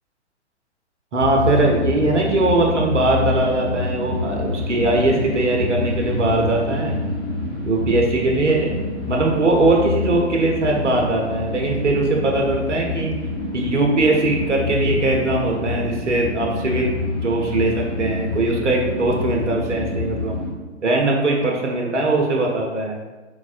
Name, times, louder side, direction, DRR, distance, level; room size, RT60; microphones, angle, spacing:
voice 1, 1.1-7.0 7.6-8.8 9.1-13.2 13.5-16.9 17.2-20.4 20.8-22.9, right 2 dB, 80° right, 0 dB, 0.6 m, -20 dB
sound 1, 1.2-20.5, left 3 dB, 50° left, 1.3 m, -26 dB
4.2 x 2.0 x 2.4 m, 1.2 s
figure-of-eight pair, 110°, 35 cm